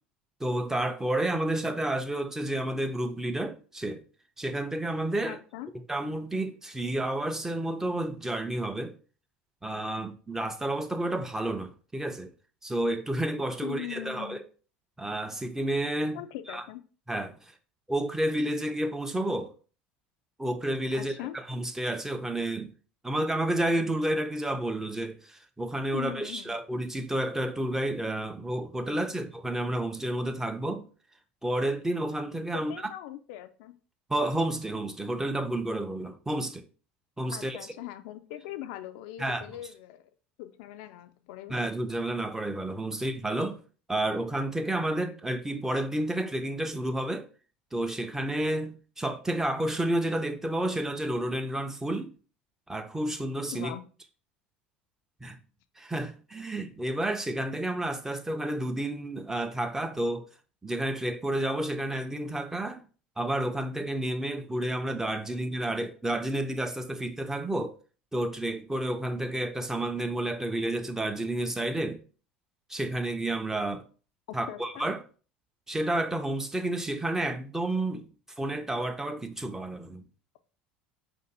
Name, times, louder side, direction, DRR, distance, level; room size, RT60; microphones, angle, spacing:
voice 1, 0.4-4.0 4.4-5.4 5.9-8.9 9.6-12.3 12.6-14.4 15.0-16.2 16.5-16.6 17.1-17.4 17.9-19.5 20.4-22.7 23.0-30.9 31.4-32.7 34.1-36.6 37.2-37.6 39.2-39.4 41.5-43.6 43.9-47.3 47.7-52.1 52.7-53.7 55.2-55.4 55.8-60.3 60.6-62.8 63.2-67.8 68.1-72.0 72.7-73.8 74.3-75.0 75.7-78.0 78.4-80.0, right 1 dB, 10° right, 0.5 m, -30 dB
voice 2, 5.3-5.7 13.6-14.4 16.1-16.8 20.9-21.3 25.9-26.6 32.5-33.8 37.3-40.1 40.4-41.7 53.5-53.8 74.5-74.9, left 13 dB, 60° left, 0.4 m, -41 dB
5.0 x 2.6 x 4.0 m
figure-of-eight pair, 70°, 6 cm